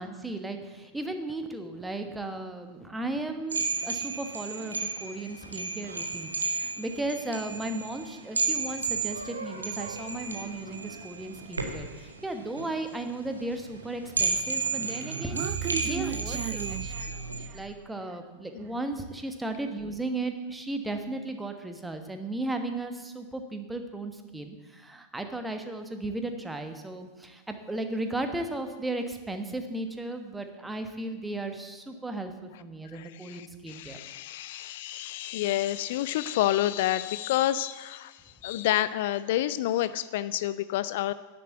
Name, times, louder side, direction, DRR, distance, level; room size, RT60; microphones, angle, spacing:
voice 1, 0.0-15.4 15.8-16.8 17.5-34.0, right 2 dB, 5° right, 6 dB, 1.3 m, -35 dB
sound 1, 3.5-17.5, right 4 dB, 75° right, 1.4 m, -33 dB
Human voice, 14.8-17.8, right 13 dB, 35° right, 0.4 m, -35 dB
voice 2, 32.9-41.1, left 13 dB, 55° left, 15 dB, 0.4 m, -29 dB
10.5 x 8.3 x 7.9 m, 1.2 s
figure-of-eight pair, 90°, 0 cm